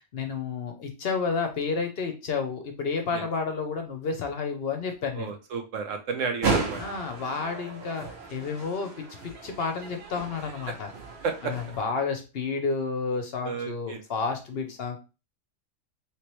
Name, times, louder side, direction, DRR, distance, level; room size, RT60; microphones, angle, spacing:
voice 1, 0.0-5.3 6.8-10.9 11.4-15.0, left 5 dB, 60° left, 4 dB, 0.8 m, -31 dB
voice 2, 5.1-6.8 11.2-11.5 13.4-14.0 14.5-14.6, right 5 dB, 80° right, 5 dB, 1.1 m, -32 dB
sound 1, 6.4-11.8, right 4 dB, 60° right, 1.0 m, -34 dB
3.2 x 3.1 x 3.0 m, 0.31 s
omnidirectional pair, 1.3 m